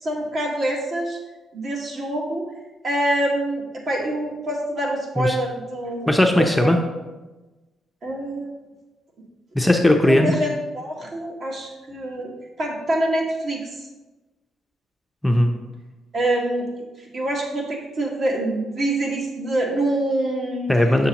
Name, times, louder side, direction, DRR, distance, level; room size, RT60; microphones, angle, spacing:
voice 1, 0.0-1.2 1.5-2.4 2.8-6.7 8.0-8.5 10.0-12.3 12.6-13.7 16.1-16.7 17.0-20.7, right 1 dB, 50° right, -1 dB, 1.6 m, -25 dB
voice 2, 6.1-6.8 9.5-10.3 15.2-15.5 20.7-21.1, left 1 dB, 5° left, 3 dB, 0.6 m, -17 dB
7.1 x 6.2 x 2.9 m, 1.1 s
cardioid pair, 90°, 0 cm